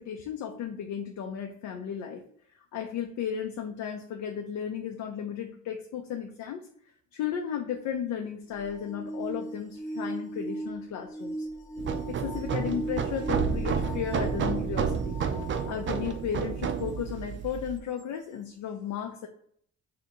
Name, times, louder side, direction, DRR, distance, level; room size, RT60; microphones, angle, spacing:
voice 1, 0.0-2.2 2.7-6.7 7.1-11.5 12.1-15.2 15.7-19.3, left 8 dB, 75° left, 3 dB, 0.6 m, -34 dB
sound 1, 8.5-16.2 16.9-17.0 18.0-18.1, right 1 dB, 10° left, 0.7 m, -37 dB
sound 2, 11.8-17.8, right 6 dB, 40° right, 0.5 m, -30 dB
2.8 x 2.5 x 4.2 m, 0.63 s
cardioid pair, 90°, 30 cm